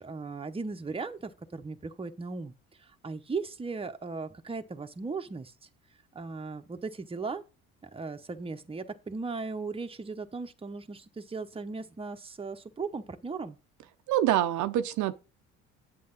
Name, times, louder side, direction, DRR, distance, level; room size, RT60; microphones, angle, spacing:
voice 1, 0.0-2.5 2.8-5.5 6.1-7.4 7.8-13.6, right 4 dB, 20° right, 0.9 m, -37 dB
voice 2, 14.1-15.1, right 12 dB, 70° right, 0.7 m, -25 dB
8.5 x 6.8 x 3.9 m
supercardioid pair, 70°, 31 cm